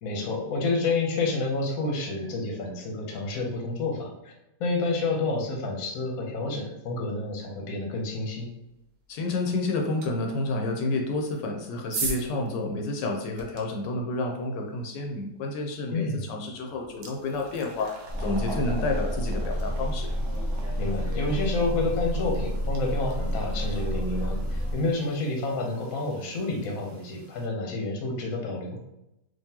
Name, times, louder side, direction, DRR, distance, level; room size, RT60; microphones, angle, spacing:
voice 1, 0.0-4.3 4.6-8.5 15.9-16.2 20.8-28.8, left 3 dB, 60° left, 0 dB, 1.1 m, -29 dB
voice 2, 9.1-20.1, left 2 dB, 85° left, 2 dB, 1.2 m, -30 dB
sound 1, 10.0-10.1 11.2-13.6 15.9-16.1 16.5-27.5, right 3 dB, 75° right, 1.2 m, -41 dB
sound 2, 18.1-24.7, equal, 15° right, 0.6 m, -29 dB
3.7 x 2.9 x 2.8 m, 0.87 s
omnidirectional pair, 1.9 m